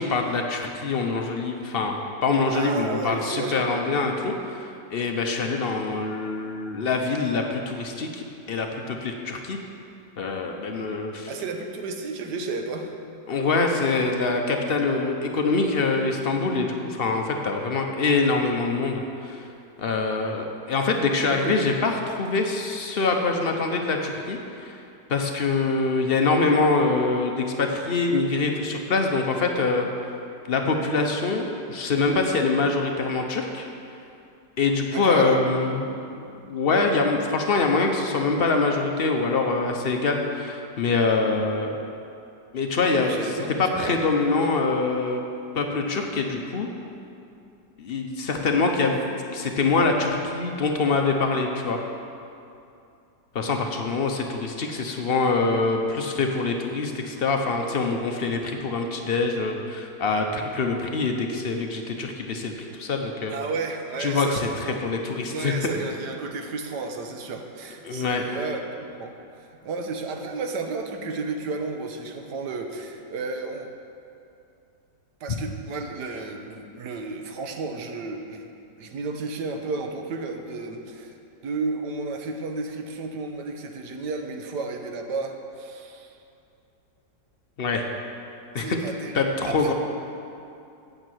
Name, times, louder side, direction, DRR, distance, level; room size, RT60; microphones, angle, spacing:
voice 1, 0.0-9.6 10.2-11.3 13.3-19.5 19.8-21.9 22.2-24.8 25.1-29.9 30.5-33.7 34.6-41.9 42.5-43.3 43.6-45.2 45.5-46.7 47.8-51.8 53.3-63.3 64.0-65.5 67.8-68.2 87.6-87.8 88.5-88.8 89.1-89.7, left 3 dB, 60° left, 3 dB, 0.6 m, -24 dB
voice 2, 2.5-3.9 11.3-12.9 21.3-21.6 34.9-35.4 43.0-44.0 44.3-44.5 63.3-64.8 65.3-73.7 75.2-78.5 78.8-81.1 81.4-86.2 88.6-89.7, right 3 dB, 70° right, 4 dB, 1.4 m, -32 dB
9.0 x 6.6 x 7.7 m, 2.6 s
omnidirectional pair, 1.9 m